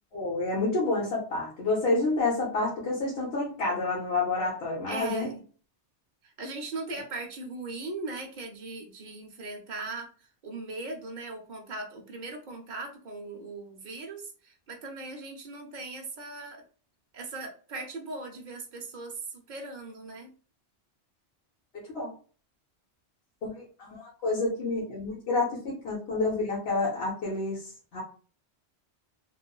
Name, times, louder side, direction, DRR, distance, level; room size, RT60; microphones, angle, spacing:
voice 1, 0.1-5.3 21.9-22.1 23.4-28.0, left 3 dB, 60° left, -5 dB, 1.0 m, -29 dB
voice 2, 4.9-5.4 6.2-10.1 10.4-16.6 17.1-20.3, right 3 dB, 50° right, 2 dB, 0.6 m, -39 dB
3.0 x 2.0 x 2.2 m, 0.40 s
omnidirectional pair, 1.2 m